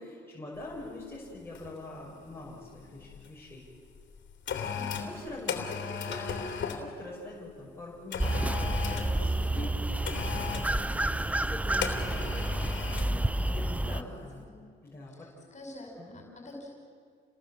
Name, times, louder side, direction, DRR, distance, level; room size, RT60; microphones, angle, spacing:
voice 1, 0.0-3.6 5.1-12.3 12.6-12.7 13.0-14.4 14.8-15.3 16.0-16.2, left 1 dB, 10° left, -5 dB, 6.1 m, -44 dB
sound 1, 0.7-0.9 1.5-1.8 2.1-3.3 3.9-6.9 8.1-9.2 10.0-10.8 11.8-13.2 13.5-13.7, left 7 dB, 70° left, 3.1 m, -36 dB
voice 2, 4.7-5.2 13.0-14.6 15.1-16.7, left 1 dB, 35° left, 1 dB, 5.5 m, -48 dB
sound 2, 8.2-14.0, right 1 dB, 5° right, 0.5 m, -30 dB
30.0 x 18.0 x 7.4 m, 2.1 s
cardioid pair, 90°, 20 cm